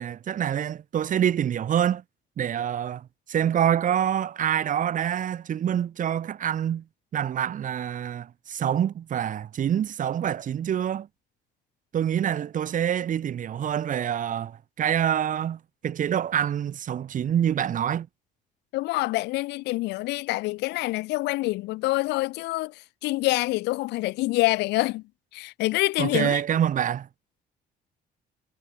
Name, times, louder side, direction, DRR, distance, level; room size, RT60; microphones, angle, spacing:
voice 1, 0.0-2.0 2.4-6.8 7.1-11.1 11.9-18.1 26.0-27.1, right 9 dB, 50° right, 3.1 m, -26 dB
voice 2, 18.7-25.0 25.3-26.4, left 20 dB, 85° left, 0.9 m, -26 dB
cardioid pair, 110°, 17 cm